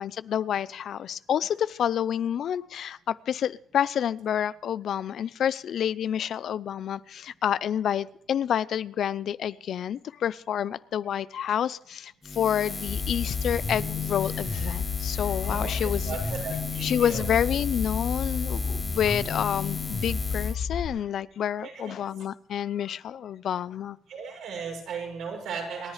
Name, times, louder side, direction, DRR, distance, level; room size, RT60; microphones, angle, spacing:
voice 1, 0.0-16.2 16.8-24.0, left 9 dB, 65° left, 18 dB, 0.5 m, -29 dB
Buzz, 12.2-20.6, left 3 dB, 20° left, 0.7 m, -37 dB
sound 1, 12.9-20.9, left 5 dB, 45° left, 3.4 m, -31 dB
voice 2, 15.4-17.3 21.6-22.0 24.1-25.9, right 5 dB, 80° right, -1 dB, 7.3 m, -36 dB
28.5 x 10.5 x 3.3 m, 0.72 s
cardioid pair, 90°, 0 cm